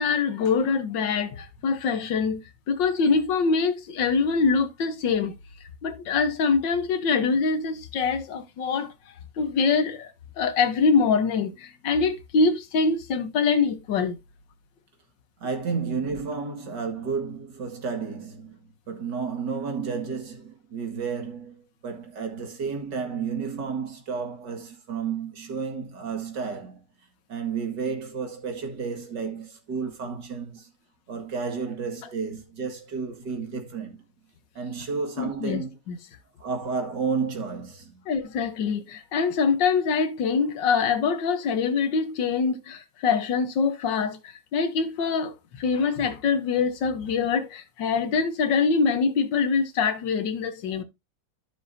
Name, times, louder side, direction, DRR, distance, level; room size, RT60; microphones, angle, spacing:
voice 1, 0.0-5.3 5.8-8.9 9.4-14.2 35.2-36.0 38.1-50.8, left 5 dB, 85° left, 1.7 m, -24 dB
voice 2, 15.4-18.6 18.9-26.8 27.3-30.7 31.1-34.0 34.6-35.8 36.4-38.0, right 5 dB, 70° right, 2.5 m, -32 dB
12.5 x 6.2 x 2.6 m
omnidirectional pair, 1.9 m